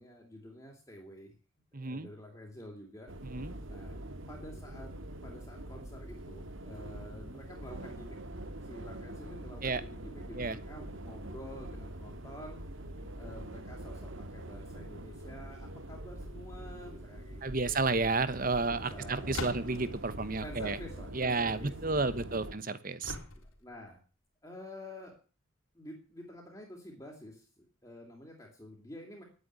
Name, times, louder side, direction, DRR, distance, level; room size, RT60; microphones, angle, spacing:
voice 1, 0.0-1.3 1.8-3.1 3.7-4.0 4.3-4.9 5.2-8.3 8.6-12.6 13.2-18.1 18.7-19.7 20.4-22.6 23.3-24.0 24.4-25.1 25.7-29.2, left 1 dB, 15° left, 0 dB, 2.9 m, -49 dB
voice 2, 1.7-2.1 3.2-3.5 9.6-9.8 10.3-10.6 17.4-20.8 21.1-23.1, right 3 dB, 40° right, 14 dB, 1.1 m, -31 dB
sound 1, 3.1-22.6, right 1 dB, 65° right, 1.8 m, -44 dB
sound 2, 19.3-20.0 23.0-23.7, left 3 dB, 75° left, 3.2 m, -40 dB
11.0 x 9.7 x 9.6 m, 0.38 s
head